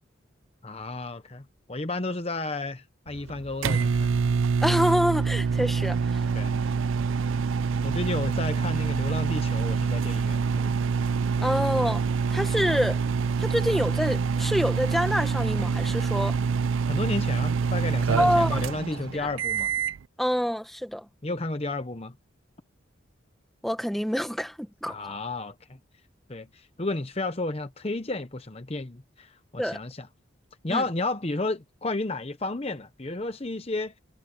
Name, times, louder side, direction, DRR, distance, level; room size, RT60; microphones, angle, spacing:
voice 1, 0.6-4.2 6.3-6.5 7.8-10.7 16.9-19.7 21.2-22.1 24.9-25.8 26.3-30.1 30.6-33.9, left 2 dB, 30° left, 0.9 m, -32 dB
sound 1, 3.1-20.0, right 5 dB, 80° right, 0.4 m, -26 dB
voice 2, 4.6-6.3 11.4-12.0 12.3-13.0 13.4-16.4 18.2-18.6 19.1-19.3 20.2-21.0 23.6-25.1 29.6-29.8 30.7-30.8, equal, ahead, 1.3 m, -26 dB
head